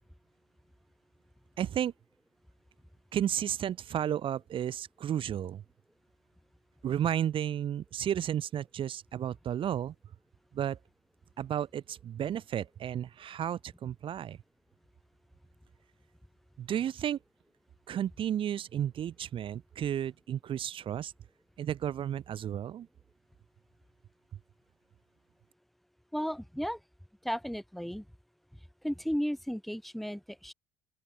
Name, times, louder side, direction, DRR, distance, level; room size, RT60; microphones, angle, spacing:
voice 1, 1.6-1.9 3.1-5.6 6.8-9.9 10.5-10.8 11.4-14.4 16.6-17.2 17.9-21.1 21.6-22.9, right 10 dB, 50° right, 1.5 m, -33 dB
voice 2, 26.1-26.8 27.2-28.0 28.8-30.5, equal, ahead, 4.2 m, -34 dB
open air
supercardioid pair, 85°, 12 cm